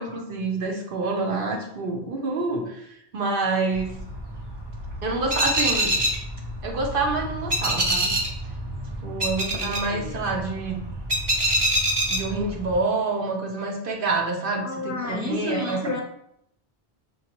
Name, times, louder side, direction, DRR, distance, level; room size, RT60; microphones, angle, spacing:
voice 1, 0.0-2.9 3.1-4.0 5.0-5.9 6.6-8.1 9.0-10.9 12.1-14.7 15.1-15.8, right 3 dB, 60° right, 1 dB, 0.9 m, -27 dB
sound 1, 3.7-12.8, right 1 dB, 30° right, 0.5 m, -27 dB
voice 2, 9.5-10.1 14.6-16.0, left 2 dB, 20° left, -1 dB, 0.7 m, -31 dB
5.2 x 2.4 x 2.9 m, 0.74 s
omnidirectional pair, 1.1 m